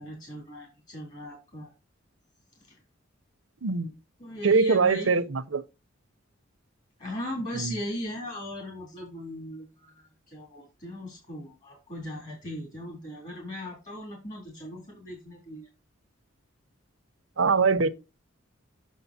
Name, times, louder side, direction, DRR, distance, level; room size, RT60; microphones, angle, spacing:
voice 1, 0.0-1.7 2.7-2.8 4.2-5.2 7.0-15.7, left 1 dB, 40° left, 3.2 m, -38 dB
voice 2, 3.6-3.9 4.4-5.6 7.5-7.8 17.4-17.9, right 4 dB, 75° right, 0.7 m, -23 dB
8.2 x 6.5 x 2.8 m
head